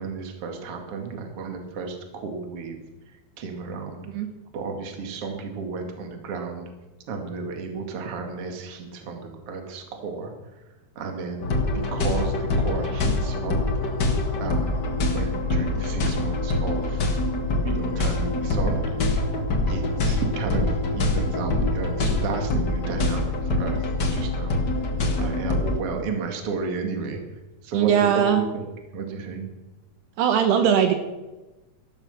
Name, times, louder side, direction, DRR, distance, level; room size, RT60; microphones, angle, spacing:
voice 1, 0.0-2.8 3.4-4.1 4.5-6.7 7.1-10.3 11.0-13.5 14.4-14.8 15.1-17.0 17.6-19.0 19.7-23.8 24.1-24.5 25.2-27.2 27.6-28.7 28.9-29.5, right 4 dB, 40° right, 4 dB, 2.4 m, -33 dB
sound 1, 11.4-25.8, left 2 dB, 90° left, 0.9 m, -25 dB
voice 2, 27.7-28.4 30.2-30.9, right 8 dB, 75° right, 7 dB, 2.9 m, -20 dB
14.0 x 12.0 x 6.7 m, 1.1 s
omnidirectional pair, 5.0 m